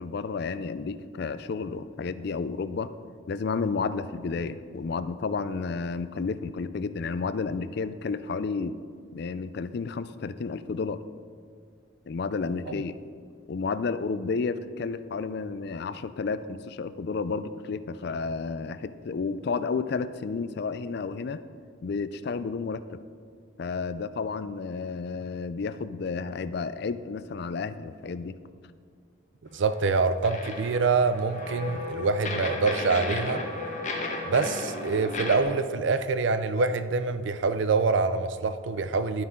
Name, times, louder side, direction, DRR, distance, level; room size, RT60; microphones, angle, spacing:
voice 1, 0.0-2.9 3.3-8.8 9.1-11.0 12.1-13.0 13.5-21.4 21.8-23.0 23.6-28.4, left 4 dB, 55° left, 13 dB, 0.4 m, -31 dB
sound 1, 29.5-35.4, left 2 dB, 35° left, 1.2 m, -34 dB
voice 2, 29.5-33.4 34.2-39.2, right 4 dB, 65° right, 12 dB, 0.5 m, -25 dB
11.5 x 9.5 x 3.7 m, 2.2 s
head